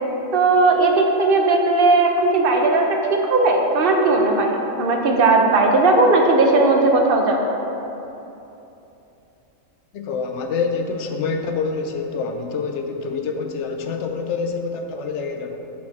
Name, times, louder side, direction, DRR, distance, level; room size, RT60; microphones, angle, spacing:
voice 1, 0.3-7.4, right 3 dB, 50° right, 2 dB, 0.8 m, -17 dB
voice 2, 9.9-15.6, left 4 dB, 65° left, 5 dB, 0.8 m, -26 dB
6.2 x 4.8 x 5.9 m, 3.0 s
omnidirectional pair, 1.4 m